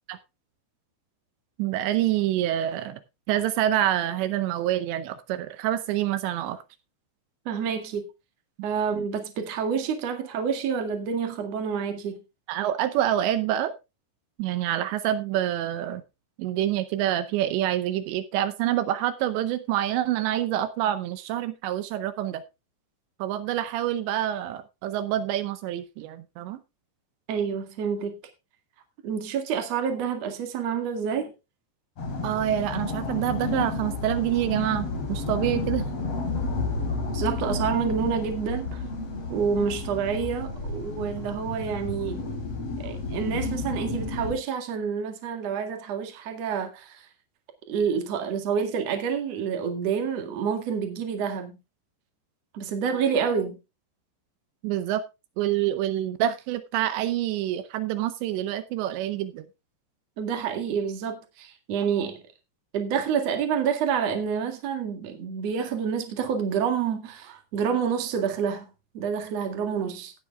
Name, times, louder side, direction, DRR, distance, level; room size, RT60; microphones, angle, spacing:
voice 1, 1.6-3.0 3.3-6.6 12.5-13.7 14.4-16.0 16.4-22.4 23.2-26.6 32.2-35.9 54.6-55.0 55.4-59.5, right 12 dB, 80° right, 3.0 m, -27 dB
voice 2, 7.5-8.0 8.6-12.2 27.3-28.2 29.0-31.3 37.1-38.8 39.3-42.2 42.8-47.0 47.7-51.5 52.5-53.6 60.2-62.2 62.7-68.7 68.9-70.1, right 7 dB, 45° right, 2.5 m, -28 dB
sound 1, 32.0-44.4, left 3 dB, 35° left, 3.5 m, -31 dB
18.0 x 8.5 x 2.3 m
omnidirectional pair, 5.2 m